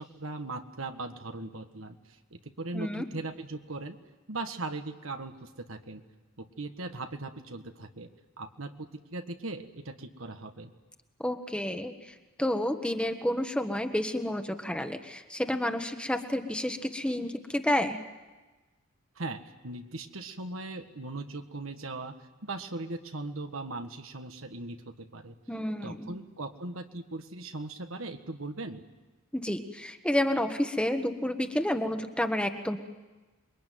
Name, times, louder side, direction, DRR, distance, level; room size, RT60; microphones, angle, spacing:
voice 1, 0.0-2.0 2.3-4.0 4.3-6.0 6.4-8.1 8.4-10.7 19.2-22.2 22.4-25.4 25.8-28.8, right 2 dB, 75° right, 7 dB, 1.7 m, -39 dB
voice 2, 2.7-3.1 11.2-18.0 25.5-26.1 29.3-32.8, left 1 dB, 5° left, 6 dB, 1.4 m, -30 dB
27.5 x 22.0 x 9.4 m, 1.2 s
head